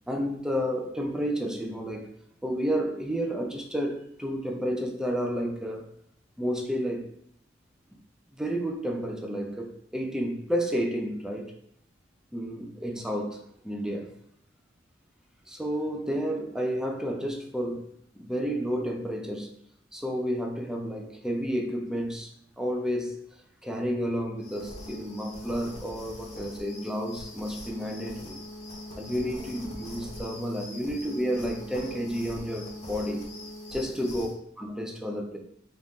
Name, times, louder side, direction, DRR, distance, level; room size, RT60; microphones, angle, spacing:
voice 1, 0.1-2.1 2.4-5.9 6.4-7.1 8.3-11.5 12.3-14.1 15.5-17.9 18.2-19.5 19.9-22.3 22.6-23.2 23.6-28.4 29.0-33.2 33.7-34.3 34.6-35.4, equal, 5° right, 1 dB, 0.4 m, -31 dB
sound 1, 24.4-34.4, left 1 dB, 35° left, 0.8 m, -42 dB
4.1 x 2.5 x 3.5 m, 0.71 s
head